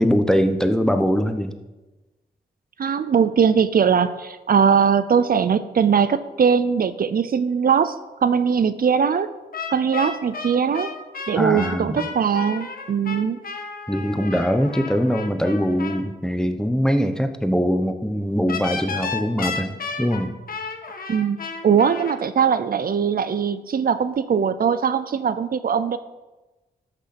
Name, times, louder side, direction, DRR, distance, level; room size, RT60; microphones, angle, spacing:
voice 1, 0.0-1.5 11.4-12.1 13.9-20.4, equal, 5° left, 8 dB, 0.9 m, -22 dB
voice 2, 2.8-8.0 8.2-9.3 9.7-10.9 11.3-13.4 21.1-26.0, right 7 dB, 60° right, 13 dB, 0.6 m, -20 dB
sound 1, 9.5-16.0 18.5-22.1, left 5 dB, 55° left, 1.5 m, -33 dB
13.0 x 6.7 x 6.0 m, 1.1 s
wide cardioid pair, 95°, 17 cm